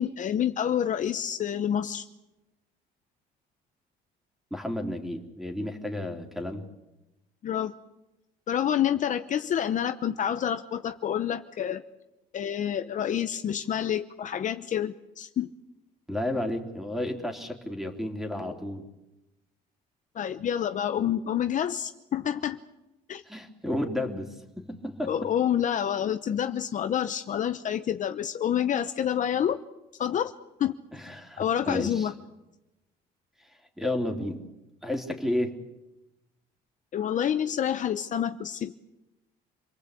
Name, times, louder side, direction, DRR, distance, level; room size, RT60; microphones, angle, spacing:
voice 1, 0.0-2.0 7.4-7.7 8.5-11.8 12.3-15.5 20.1-22.6 23.1-23.2 25.1-29.6 30.0-30.3 30.6-30.7 31.4-32.1 36.9-38.8, left 9 dB, 50° left, 9 dB, 1.0 m, -28 dB
voice 2, 4.5-6.6 16.1-18.9 23.3-25.1 30.9-32.1 33.4-34.4 34.8-35.6, left 1 dB, ahead, 4 dB, 3.5 m, -32 dB
27.5 x 19.0 x 8.4 m, 0.98 s
cardioid pair, 110°, 17 cm